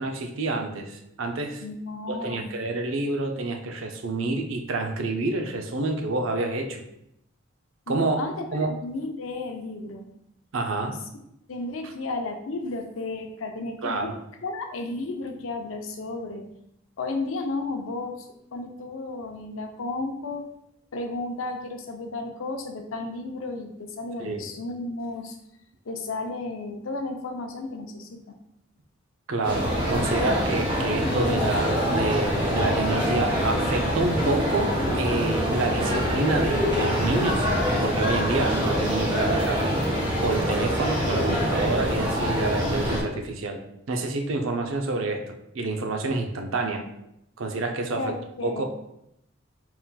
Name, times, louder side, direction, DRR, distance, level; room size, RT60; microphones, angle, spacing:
voice 1, 0.0-1.6 2.1-6.8 7.9-8.2 8.5-8.7 10.5-10.9 13.8-14.1 24.2-24.5 29.3-37.5 37.8-39.6 40.2-43.6 43.9-46.8 47.4-48.1 48.4-48.6, right 2 dB, 85° right, 4 dB, 0.5 m, -28 dB
voice 2, 1.6-2.5 7.9-10.1 10.8-11.0 11.5-16.5 17.0-20.5 20.9-25.4 25.9-28.4 47.9-48.6, left 2 dB, 85° left, 5 dB, 0.6 m, -33 dB
sound 1, 29.4-43.0, equal, 25° right, 1.0 m, -25 dB
4.2 x 3.8 x 2.2 m, 0.81 s
head